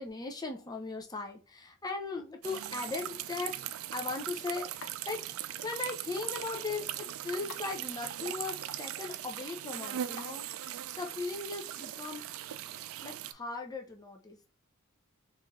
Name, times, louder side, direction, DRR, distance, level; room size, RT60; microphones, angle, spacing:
voice 1, 0.0-3.6 3.9-5.2 5.6-12.3 13.0-14.5, left 3 dB, 20° left, 3 dB, 0.6 m, -38 dB
sound 1, 2.4-13.3, right 11 dB, 85° right, 0.3 m, -39 dB
sound 2, 3.7-10.5, left 5 dB, 80° left, 0.7 m, -55 dB
3.7 x 2.6 x 3.5 m, 0.34 s
head